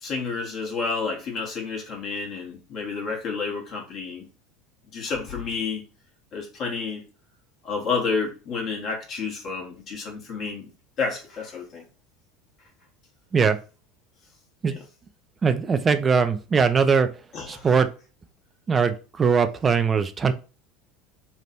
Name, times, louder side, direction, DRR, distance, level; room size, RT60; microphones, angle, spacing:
voice 1, 0.0-4.2 4.9-5.8 6.3-7.0 7.6-10.7 11.0-11.8 17.3-17.7, left 4 dB, 45° left, 1.4 m, -30 dB
voice 2, 15.4-17.1 17.5-17.9 18.7-20.3, right 5 dB, 25° right, 0.5 m, -21 dB
3.4 x 2.5 x 4.4 m
figure-of-eight pair, 70°, 0 cm